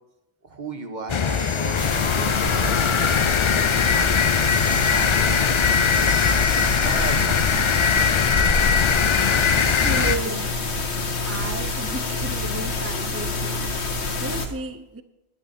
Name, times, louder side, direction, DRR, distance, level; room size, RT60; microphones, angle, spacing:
voice 1, 0.4-1.8 2.1-3.3 3.9-5.9 6.8-8.3, right 4 dB, 45° right, 1.4 m, -37 dB
sound 1, 1.1-10.2, left 6 dB, 50° left, 0.3 m, -21 dB
sound 2, 1.2-2.1 4.5-5.2 5.9-7.3, equal, 5° right, 1.2 m, -38 dB
sound 3, 1.8-14.5, left 3 dB, 80° left, 1.6 m, -27 dB
voice 2, 9.2-10.5 11.2-13.7 14.2-15.0, right 4 dB, 20° right, 0.4 m, -34 dB
19.5 x 11.0 x 4.3 m
omnidirectional pair, 1.1 m